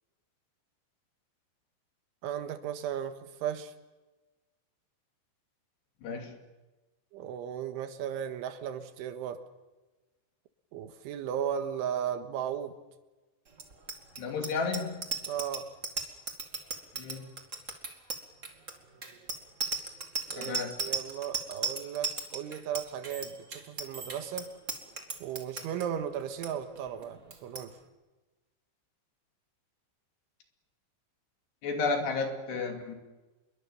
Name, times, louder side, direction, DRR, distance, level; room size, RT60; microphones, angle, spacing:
voice 1, 2.2-3.7 7.1-9.4 10.7-12.8 15.3-15.7 20.3-24.5 25.2-27.8, right 9 dB, 85° right, 8 dB, 3.9 m, -36 dB
voice 2, 6.0-6.3 14.2-15.0 16.9-17.3 20.4-20.7 31.6-33.0, left 4 dB, 65° left, 4 dB, 4.6 m, -32 dB
Bicycle bell, 13.5-25.8 26.2-26.5 26.7-27.0 27.3-27.6, right 4 dB, 40° right, 1.0 m, -36 dB
27.0 x 22.5 x 7.3 m, 1.2 s
omnidirectional pair, 5.4 m